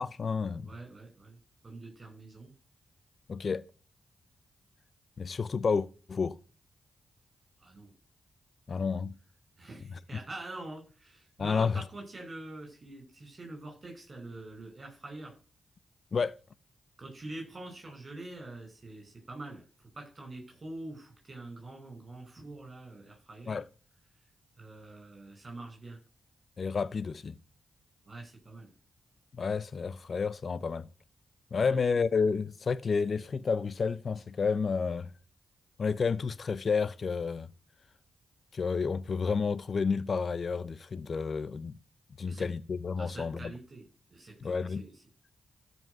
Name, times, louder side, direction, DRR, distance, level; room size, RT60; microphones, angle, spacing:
voice 1, 0.0-0.7 3.3-3.6 5.2-6.4 8.7-9.2 11.4-11.8 16.1-16.3 23.5-23.6 26.6-27.4 29.3-30.8 31.5-35.1 35.8-37.5 38.5-41.7 42.2-43.4 44.4-44.9, left 5 dB, 55° left, 0.6 m, -30 dB
voice 2, 0.6-1.4 1.6-2.5 7.6-7.9 9.6-15.3 17.0-19.6 19.9-23.6 24.6-26.0 28.0-28.7 31.6-32.0 42.2-42.5 43.0-43.8 44.1-45.0, right 2 dB, 45° right, 5.0 m, -45 dB
13.5 x 5.5 x 6.6 m
cardioid pair, 60°, 0 cm